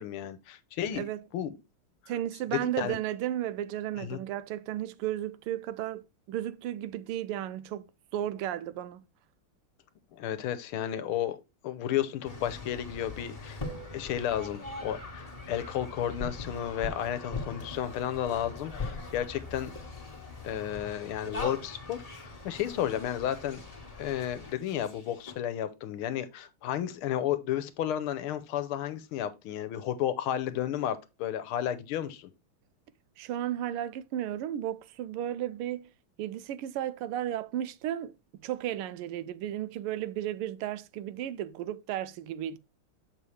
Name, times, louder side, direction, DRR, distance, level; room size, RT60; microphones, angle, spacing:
voice 1, 0.0-1.0 1.3-1.5 2.5-3.0 4.0-4.2 10.1-11.4 11.6-13.6 13.9-19.7 20.4-23.6 24.0-32.3, left 11 dB, 80° left, 1.6 m, -32 dB
voice 2, 0.9-1.2 2.1-9.0 33.2-35.9 36.2-38.1 38.4-42.6, right 12 dB, 90° right, 1.5 m, -34 dB
sound 1, 12.2-25.3, left 3 dB, 20° left, 1.1 m, -41 dB
7.0 x 5.6 x 3.2 m
omnidirectional pair, 2.4 m